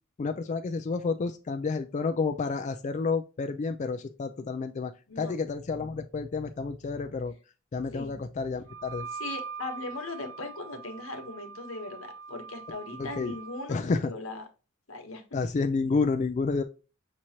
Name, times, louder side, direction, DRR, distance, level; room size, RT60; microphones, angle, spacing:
voice 1, 0.2-4.9 5.2-7.3 7.7-9.1 13.0-13.3 13.7-14.1 15.3-16.6, left 4 dB, 35° left, 6 dB, 0.3 m, -30 dB
Wind instrument woodwind instrument, 8.7-13.6, right 5 dB, 75° right, 1.3 m, -42 dB
voice 2, 9.1-14.5 14.9-15.2, left 2 dB, 85° left, 5 dB, 1.3 m, -39 dB
6.1 x 3.0 x 2.7 m, 0.33 s
head